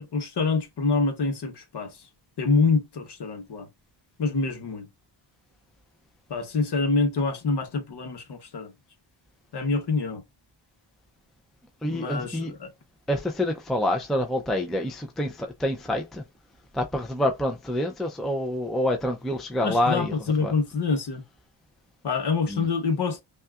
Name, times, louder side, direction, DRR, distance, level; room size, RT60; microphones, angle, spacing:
voice 1, 0.0-2.0 2.4-3.7 4.2-4.9 6.3-8.7 9.5-10.2 11.9-12.7 19.6-21.2 22.0-23.2, left 4 dB, 50° left, 1.1 m, -26 dB
voice 2, 11.8-12.5 13.1-16.2 16.7-20.1 20.4-20.5 22.5-22.7, left 1 dB, ahead, 0.5 m, -27 dB
5.4 x 2.4 x 2.4 m
wide cardioid pair, 115°, 50 cm